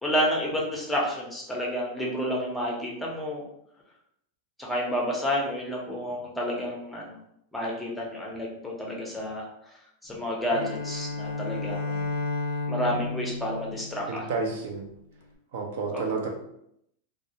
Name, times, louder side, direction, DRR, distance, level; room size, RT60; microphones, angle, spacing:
voice 1, 0.0-3.4 4.6-7.2 7.5-9.5 10.0-12.1 12.7-14.3 15.9-16.0, equal, 5° left, -3 dB, 0.6 m, -30 dB
Bowed string instrument, 10.4-14.7, left 3 dB, 75° left, 0.4 m, -32 dB
voice 2, 14.1-14.9 15.5-16.3, right 4 dB, 75° right, 2 dB, 0.5 m, -30 dB
2.2 x 2.0 x 2.7 m, 0.74 s
supercardioid pair, 145°, 0 cm